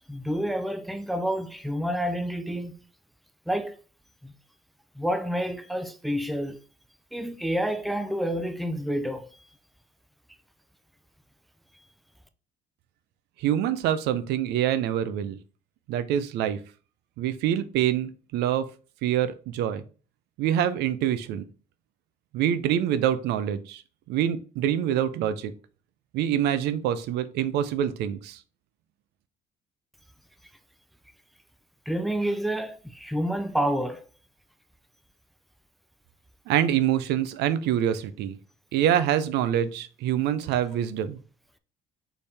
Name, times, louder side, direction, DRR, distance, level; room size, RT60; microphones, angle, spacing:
voice 1, 0.1-2.8 3.5-3.8 4.2-4.3 5.0-6.6 7.1-9.3 31.9-34.0, equal, ahead, 0.4 m, -29 dB
voice 2, 13.4-15.4 15.9-16.6 17.2-18.7 19.0-19.8 20.4-21.4 22.3-23.8 24.1-25.5 26.1-28.4 36.5-38.4 38.7-41.2, right 10 dB, 85° right, 0.5 m, -25 dB
4.3 x 3.4 x 3.4 m
cardioid pair, 110°, 17 cm